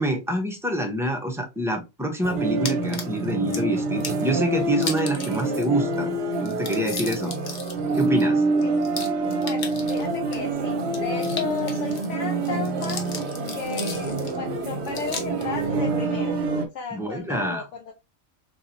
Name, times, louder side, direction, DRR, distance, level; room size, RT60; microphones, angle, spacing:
voice 1, 0.0-6.1 6.4-7.3 7.9-8.4 16.9-17.6, equal, 5° right, 0.4 m, -26 dB
sound 1, 2.2-16.7, right 3 dB, 65° right, 0.9 m, -26 dB
sound 2, 2.6-3.6 4.0-4.3 4.7-5.7 5.9-6.0 6.3-10.4 10.9-12.1 12.4-14.4 14.8-15.4, left 4 dB, 45° left, 0.7 m, -36 dB
voice 2, 9.4-13.1 13.5-16.3 16.7-17.9, left 5 dB, 70° left, 1.0 m, -34 dB
3.8 x 2.9 x 2.5 m
omnidirectional pair, 1.3 m